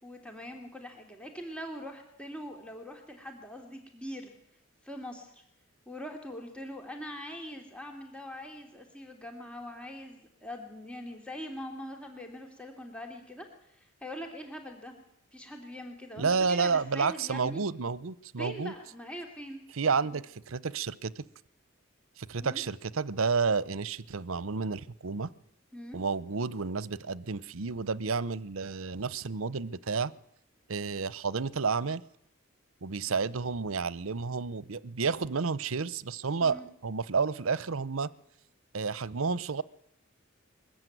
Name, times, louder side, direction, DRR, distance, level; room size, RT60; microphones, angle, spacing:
voice 1, 0.0-4.3 4.8-5.4 5.9-14.9 15.3-17.6 18.4-19.6 22.4-22.6 25.7-26.0 36.4-36.7, equal, 5° left, 3 dB, 2.7 m, -42 dB
voice 2, 16.2-18.7 19.7-21.3 22.2-25.3 25.9-30.1 30.7-32.0 32.8-38.1 38.7-39.6, right 5 dB, 70° right, 19 dB, 0.8 m, -31 dB
22.0 x 14.5 x 9.3 m, 0.75 s
head